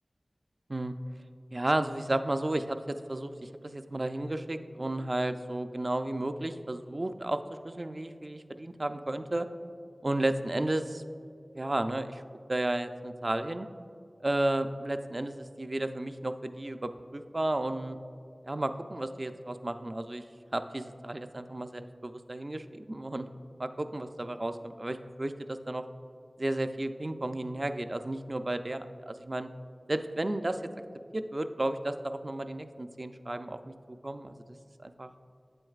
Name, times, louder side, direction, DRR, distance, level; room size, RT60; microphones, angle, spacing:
voice 1, 1.5-9.5 10.0-11.0 11.6-12.2 12.5-13.7 14.2-18.0 18.4-20.2 20.5-23.3 23.6-25.8 26.4-29.5 29.9-30.6 31.1-33.7 34.0-34.3 34.8-35.1, right 1 dB, 45° right, 9 dB, 0.3 m, -33 dB
8.5 x 7.7 x 2.4 m, 2.4 s
wide cardioid pair, 45°, 0 cm